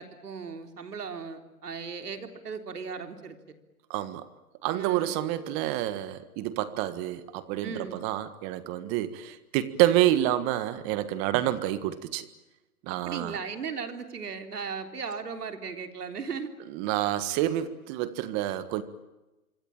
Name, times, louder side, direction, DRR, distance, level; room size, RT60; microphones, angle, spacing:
voice 1, 0.0-3.4 4.7-5.1 7.6-8.0 12.9-16.5, right 5 dB, 90° right, 3.9 m, -37 dB
voice 2, 3.9-4.3 4.6-12.3 12.8-13.4 16.7-18.8, right 13 dB, 30° right, 1.6 m, -28 dB
26.0 x 23.5 x 8.9 m
hypercardioid pair, 140°, 45 cm